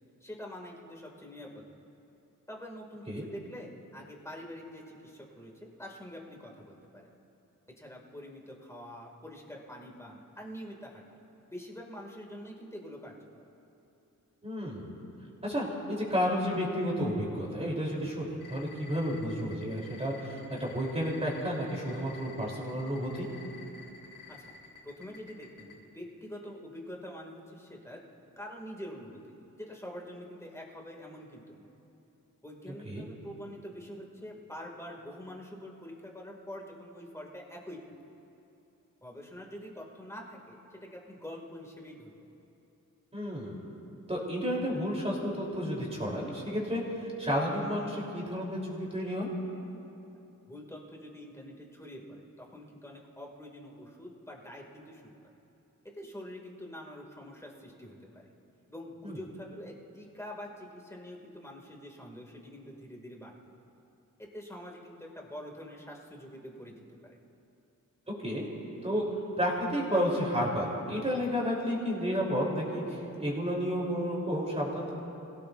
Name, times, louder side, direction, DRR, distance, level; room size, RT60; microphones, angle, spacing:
voice 1, 0.2-1.7 2.5-7.1 7.8-11.2 11.5-13.3 24.4-24.5 24.8-28.0 28.4-31.7 32.4-37.8 39.0-42.3 50.5-55.1 55.9-58.3 58.7-63.3 64.2-66.7 67.0-67.2, equal, 10° left, -1 dB, 2.5 m, -45 dB
voice 2, 14.4-14.9 15.4-23.3 32.9-33.1 43.1-43.6 44.1-49.3 59.0-59.2 68.2-68.5 68.8-74.9, equal, 20° right, -3 dB, 3.6 m, -31 dB
sound 1, 18.4-25.7, left 6 dB, 70° left, 3.7 m, -50 dB
27.5 x 17.0 x 2.6 m, 2.9 s
cardioid pair, 95°, 32 cm